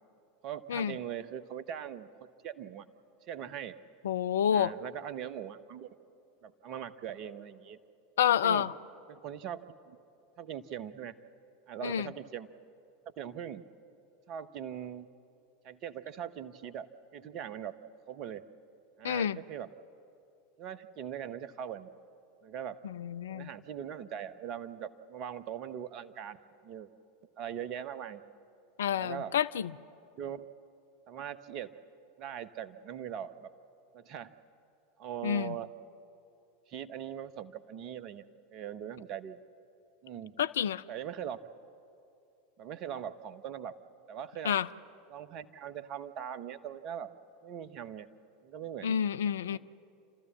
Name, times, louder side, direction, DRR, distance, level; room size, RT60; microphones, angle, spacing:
voice 1, 0.4-2.9 3.3-3.8 4.5-5.9 6.4-7.8 8.4-8.7 9.1-10.0 10.4-11.1 11.7-12.5 13.2-13.6 14.3-15.1 15.6-16.9 17.1-17.8 18.1-18.4 19.0-19.7 20.6-21.9 22.4-22.8 23.3-26.4 26.6-26.9 27.4-28.2 29.0-29.4 30.1-30.5 31.1-31.7 32.2-33.5 33.9-34.3 35.0-35.7 36.7-38.2 38.5-39.4 40.0-40.3 40.9-41.4 42.6-43.7 44.1-44.6 45.1-47.1 47.4-48.1 48.4-49.0 49.5-49.6, right 9 dB, 40° right, 14 dB, 0.8 m, -41 dB
voice 2, 4.0-4.7 8.2-8.7 11.8-12.1 19.0-19.4 22.8-23.5 28.8-29.7 35.2-35.5 40.4-40.8 44.4-44.7 48.8-49.6, left 9 dB, 65° left, 15 dB, 0.4 m, -29 dB
29.5 x 13.5 x 7.4 m, 2.7 s
figure-of-eight pair, 80°, 0 cm